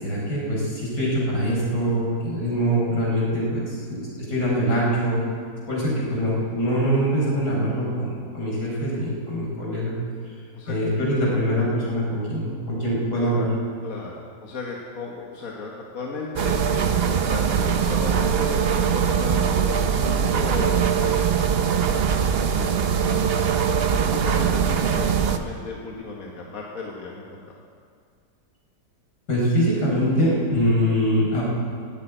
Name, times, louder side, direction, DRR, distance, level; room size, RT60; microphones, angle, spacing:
voice 1, 0.0-5.2 5.7-9.9 10.7-13.5 29.3-31.4, equal, 70° left, -5 dB, 5.3 m, -23 dB
voice 2, 13.8-21.3 21.6-27.6, left 3 dB, 55° left, -2 dB, 1.8 m, -35 dB
sound 1, 16.4-25.4, right 7 dB, 50° right, 0.7 m, -22 dB
16.0 x 8.4 x 9.1 m, 2.1 s
omnidirectional pair, 1.8 m